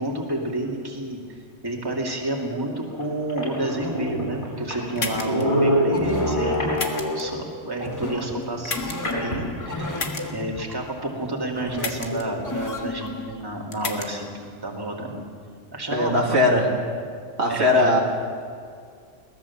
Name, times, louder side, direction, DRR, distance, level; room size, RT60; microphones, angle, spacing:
voice 1, 0.0-6.6 7.1-15.2 15.7-16.7 17.5-18.0, right 1 dB, 20° right, -1 dB, 2.5 m, -30 dB
sound 1, 2.3-2.4 3.0-3.1 3.3-7.4 9.0-10.1, equal, 40° left, 5.1 m, -26 dB
sound 2, 5.0-5.4 6.7-7.2 8.6-9.1 10.0-10.2 11.8-12.2 13.7-14.1, left 4 dB, 75° left, 2.0 m, -31 dB
sound 3, 5.9-13.4, left 1 dB, 15° left, 1.6 m, -34 dB
voice 2, 15.9-16.7 17.4-18.0, left 1 dB, 60° right, -1 dB, 2.9 m, -19 dB
22.5 x 18.0 x 7.2 m, 2.2 s
omnidirectional pair, 1.3 m